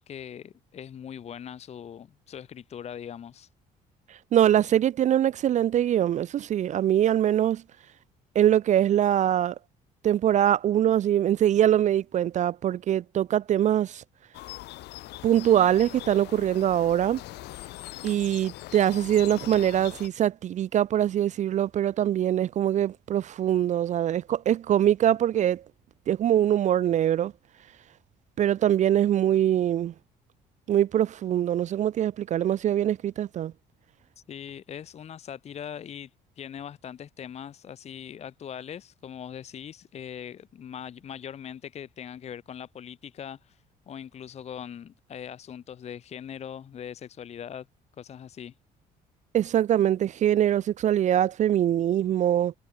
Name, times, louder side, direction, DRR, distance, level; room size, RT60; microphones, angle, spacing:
voice 1, 0.0-3.5 34.2-36.1 36.4-47.7 48.0-48.5, left 8 dB, 40° left, 0.8 m, -41 dB
voice 2, 4.3-7.6 8.4-9.6 10.0-14.0 15.2-17.2 18.0-25.6 26.1-27.3 28.4-29.9 30.7-33.5 49.3-52.5, right 11 dB, 45° right, 0.4 m, -23 dB
sound 1, 14.3-20.1, left 18 dB, 85° left, 3.2 m, -42 dB
cardioid pair, 110°, 17 cm